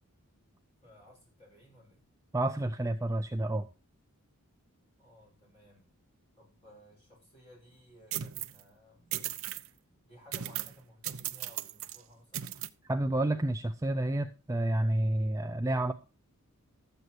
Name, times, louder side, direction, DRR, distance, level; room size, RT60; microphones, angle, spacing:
voice 1, 0.8-2.0 5.0-6.0 6.4-9.3 10.0-12.6, equal, 25° left, -2 dB, 6.1 m, -58 dB
voice 2, 2.3-3.7 12.8-15.9, right 1 dB, 15° right, 7 dB, 0.4 m, -29 dB
sound 1, 8.1-8.6 9.1-9.7 10.3-10.8 11.0-12.0 12.3-12.7, right 12 dB, 65° right, 0.6 m, -36 dB
12.5 x 8.2 x 4.6 m, 0.32 s
head